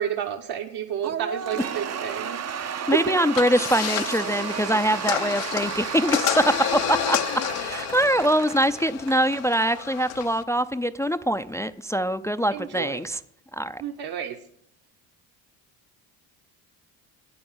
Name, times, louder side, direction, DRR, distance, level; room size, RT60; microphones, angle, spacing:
voice 1, 0.0-3.2 12.5-13.0 13.8-14.4, right 9 dB, 55° right, 3 dB, 1.1 m, -31 dB
Cheering / Applause / Crowd, 1.0-9.7, right 8 dB, 35° right, 0.6 m, -33 dB
voice 2, 2.7-7.2 7.6-13.2 13.5-13.8, right 1 dB, 5° left, 10 dB, 0.4 m, -23 dB
sound 1, 3.3-10.4, left 12 dB, 85° left, 0.9 m, -30 dB
9.6 x 8.0 x 8.0 m, 0.70 s
supercardioid pair, 70°, 45 cm